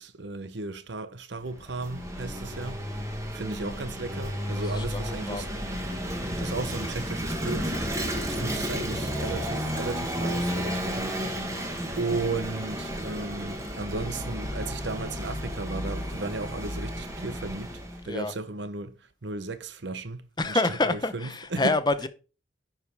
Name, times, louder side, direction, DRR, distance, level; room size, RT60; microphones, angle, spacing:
voice 1, 0.0-2.8 3.3-5.5 6.4-7.8 8.2-11.1 12.0-17.7 18.0-19.0 19.2-20.6 20.9-21.8, right 3 dB, 70° right, 0.9 m, -35 dB
Vehicle / Engine, 1.4-18.1, equal, 15° right, 1.4 m, -32 dB
voice 2, 4.7-5.5 8.3-8.4 18.0-18.3 20.4-22.1, left 2 dB, 20° left, 0.7 m, -27 dB
11.0 x 5.0 x 4.7 m
head